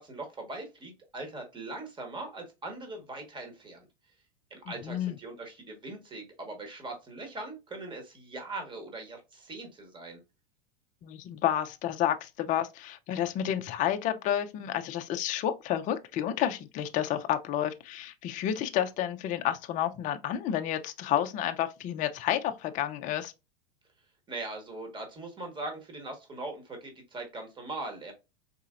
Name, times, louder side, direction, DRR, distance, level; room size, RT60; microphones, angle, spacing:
voice 1, 0.0-3.9 4.5-10.2 24.3-28.1, right 2 dB, 15° right, 1.2 m, -41 dB
voice 2, 4.7-5.1 11.0-23.3, left 11 dB, 25° left, 0.4 m, -30 dB
4.1 x 2.8 x 2.4 m
supercardioid pair, 125°, 30 cm